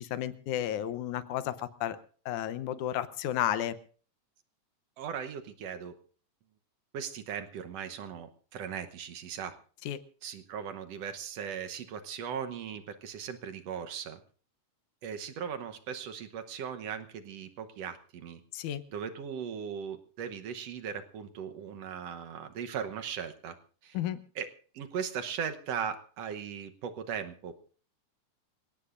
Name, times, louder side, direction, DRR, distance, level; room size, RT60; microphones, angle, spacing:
voice 1, 0.0-2.0 2.3-3.8 9.8-10.0 18.5-18.8 23.9-24.2, left 11 dB, 80° left, 13 dB, 2.3 m, -32 dB
voice 2, 5.0-6.0 6.9-9.6 10.2-14.2 15.0-18.4 18.9-23.6 23.8-24.0 24.4-24.5 24.7-27.6, right 7 dB, 65° right, 7 dB, 1.9 m, -38 dB
27.0 x 17.0 x 2.5 m, 0.41 s
omnidirectional pair, 3.5 m